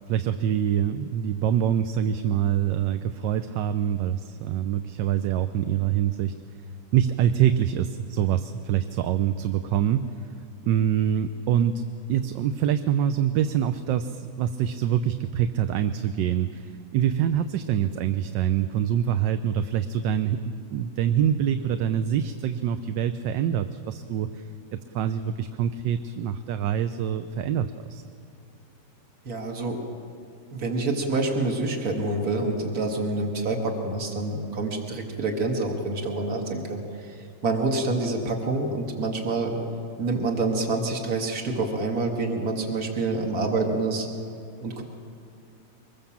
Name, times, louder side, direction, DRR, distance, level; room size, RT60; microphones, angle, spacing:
voice 1, 0.1-6.3 6.9-10.1 10.6-11.8 12.1-24.4 24.7-28.0, right 9 dB, 80° right, 9 dB, 1.4 m, -25 dB
voice 2, 29.2-29.8 30.5-39.6 40.0-44.1 44.6-44.8, right 3 dB, 55° right, 1 dB, 2.5 m, -27 dB
24.5 x 21.0 x 7.3 m, 2.4 s
omnidirectional pair, 2.0 m